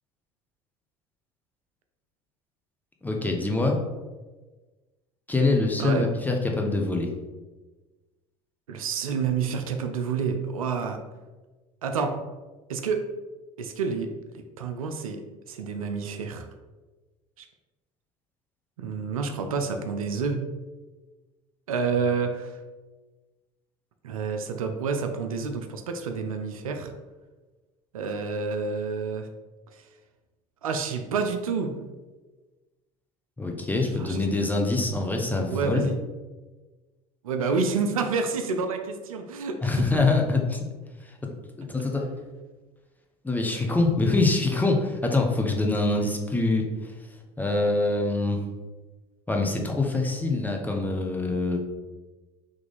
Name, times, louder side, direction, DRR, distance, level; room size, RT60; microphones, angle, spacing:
voice 1, 3.0-3.8 5.3-7.1 33.4-35.8 39.6-40.7 41.6-42.0 43.2-46.9 47.4-48.4 49.3-51.6, left 2 dB, 10° left, 2 dB, 0.8 m, -24 dB
voice 2, 8.7-11.0 11.8-12.2 12.7-13.0 13.6-14.1 14.3-15.2 15.5-16.5 17.4-17.5 18.8-20.4 21.7-22.6 24.0-26.9 27.9-29.3 29.7-29.9 30.6-31.7 34.0-34.2 35.5-36.0 37.2-39.8 41.8-41.9 43.4-43.7, right 5 dB, 90° right, 6 dB, 0.4 m, -29 dB
3.6 x 3.1 x 3.9 m, 1.2 s
hypercardioid pair, 70°, 18 cm